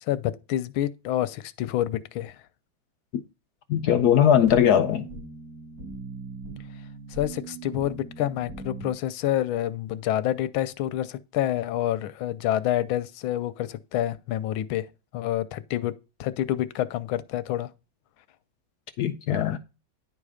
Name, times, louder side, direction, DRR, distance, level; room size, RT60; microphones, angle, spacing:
voice 1, 0.0-2.4 7.1-14.9 15.1-15.9 16.2-17.7, left 12 dB, 90° left, 1.5 m, -28 dB
voice 2, 3.7-5.0 19.0-19.6, left 9 dB, 70° left, 1.0 m, -20 dB
sound 1, 3.9-8.9, right 4 dB, 45° right, 4.5 m, -40 dB
10.5 x 4.1 x 4.9 m
omnidirectional pair, 2.2 m